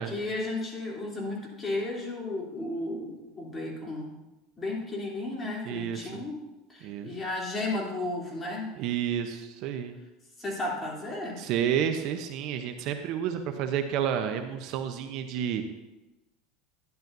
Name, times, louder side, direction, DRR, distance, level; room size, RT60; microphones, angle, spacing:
voice 1, 0.0-4.1 4.6-6.4 6.7-8.8 10.4-11.4, left 2 dB, 20° left, -3 dB, 3.1 m, -34 dB
voice 2, 5.6-6.2 6.8-7.1 8.8-10.0 11.4-15.7, right 9 dB, 55° right, 7 dB, 0.8 m, -30 dB
12.0 x 10.5 x 2.7 m, 1.0 s
supercardioid pair, 130°, 0 cm